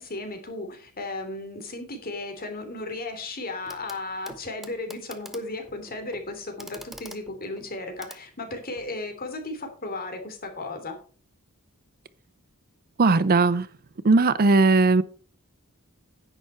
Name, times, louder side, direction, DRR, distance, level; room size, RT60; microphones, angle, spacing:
voice 1, 0.0-11.0, left 2 dB, 40° left, 3.0 m, -35 dB
Clock, 3.7-4.0 4.3-9.0 10.2-10.3, right 1 dB, ahead, 1.1 m, -46 dB
voice 2, 13.0-13.7 14.0-15.0, right 3 dB, 40° right, 0.6 m, -18 dB
10.5 x 9.2 x 4.5 m
head